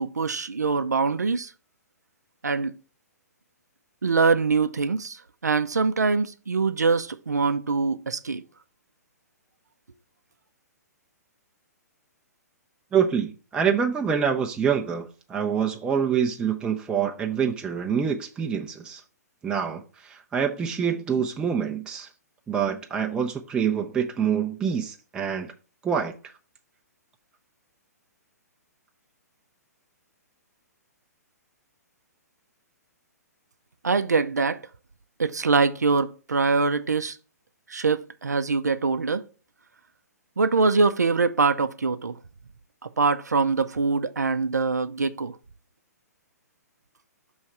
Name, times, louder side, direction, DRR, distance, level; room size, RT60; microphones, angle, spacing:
voice 1, 0.0-1.5 2.4-2.7 4.0-8.4 33.8-34.6 35.2-37.2 37.7-39.2 40.4-42.2 43.0-45.4, right 4 dB, 75° right, 0.5 m, -23 dB
voice 2, 12.9-19.0 19.4-22.1 22.5-25.5 25.8-26.1, right 7 dB, 10° right, 0.5 m, -26 dB
6.3 x 3.1 x 5.6 m
figure-of-eight pair, 120°, 9 cm